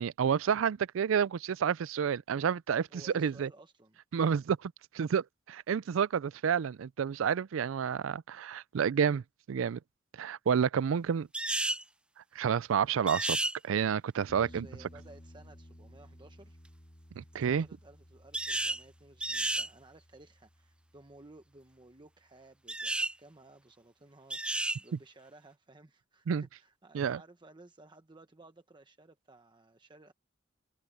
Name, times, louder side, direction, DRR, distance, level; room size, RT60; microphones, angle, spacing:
voice 1, 0.0-3.5 4.1-9.8 10.2-11.3 12.4-13.4 13.6-14.7 17.2-17.7 26.3-26.4 26.9-27.2, right 7 dB, 85° right, 0.4 m, -30 dB
voice 2, 2.9-4.0 14.4-16.6 17.3-30.1, right 2 dB, 25° right, 1.0 m, -57 dB
sound 1, 11.3-11.8 13.1-13.5 18.3-18.8 19.2-19.7 22.7-23.1 24.3-24.8, right 2 dB, 5° right, 0.3 m, -32 dB
sound 2, 14.3-21.9 24.9-25.0, equal, 35° left, 3.0 m, -56 dB
head